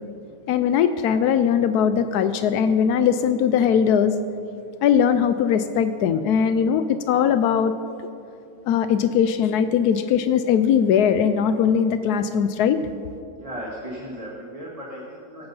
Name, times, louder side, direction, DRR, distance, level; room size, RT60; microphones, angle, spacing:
voice 1, 0.5-4.2 4.8-7.7 8.7-12.8, left 8 dB, 90° left, 10 dB, 1.2 m, -20 dB
voice 2, 13.3-15.5, equal, 20° right, -4 dB, 1.9 m, -36 dB
25.0 x 8.9 x 5.5 m, 2.5 s
omnidirectional pair, 1.6 m